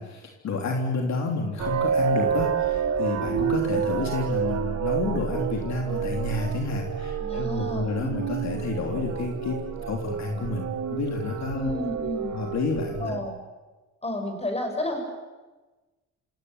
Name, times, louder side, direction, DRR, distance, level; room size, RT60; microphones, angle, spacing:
voice 1, 0.0-10.6 10.9-11.7 12.3-13.1, left 3 dB, 65° left, 1 dB, 3.4 m, -29 dB
sound 1, 1.6-13.2, right 7 dB, 60° right, 2.0 m, -29 dB
voice 2, 7.2-8.1 11.5-12.3 13.0-13.4 14.0-15.0, left 1 dB, 20° left, 5 dB, 6.9 m, -31 dB
27.5 x 17.0 x 9.7 m, 1.2 s
cardioid pair, 90°, 30 cm